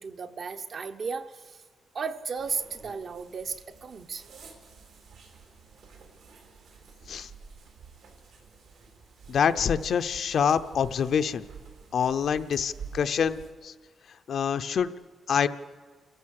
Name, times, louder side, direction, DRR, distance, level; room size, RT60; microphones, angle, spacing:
voice 1, 0.0-1.6 1.9-4.2, right 5 dB, 45° right, 8 dB, 0.9 m, -35 dB
sound 1, 2.4-13.5, right 6 dB, 80° right, 3.8 m, -49 dB
voice 2, 9.3-11.5 11.9-13.7 14.3-14.9 15.3-15.5, left 7 dB, 55° left, 11 dB, 0.6 m, -26 dB
29.0 x 14.5 x 6.6 m, 1.5 s
wide cardioid pair, 155°, 0 cm